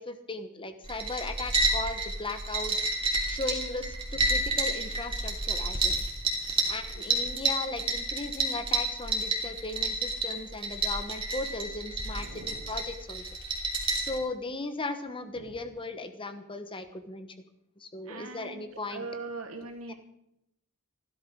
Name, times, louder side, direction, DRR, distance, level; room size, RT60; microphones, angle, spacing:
voice 1, 0.0-2.9 3.3-6.0 6.7-13.2 14.0-17.3 17.8-19.1 19.9-20.0, left 2 dB, 25° left, 9 dB, 1.2 m, -37 dB
sound 1, 0.8-14.2, right 2 dB, 25° right, 3.0 m, -30 dB
voice 2, 12.1-12.6 15.4-15.6 18.0-19.9, right 3 dB, 80° right, 3 dB, 2.7 m, -42 dB
15.0 x 12.5 x 6.3 m, 0.81 s
head